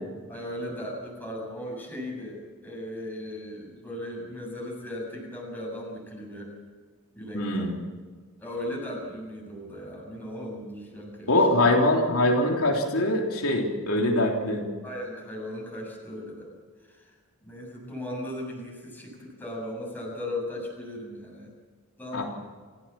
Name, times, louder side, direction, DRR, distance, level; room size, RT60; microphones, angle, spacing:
voice 1, 0.3-6.5 7.1-7.7 8.4-11.7 14.8-16.5 16.8-21.5 22.0-22.2, left 1 dB, 10° left, -2 dB, 7.4 m, -37 dB
voice 2, 7.3-7.8 11.3-14.6 22.1-22.2, left 1 dB, 70° left, 0 dB, 3.5 m, -23 dB
28.5 x 16.0 x 7.6 m, 1.5 s
head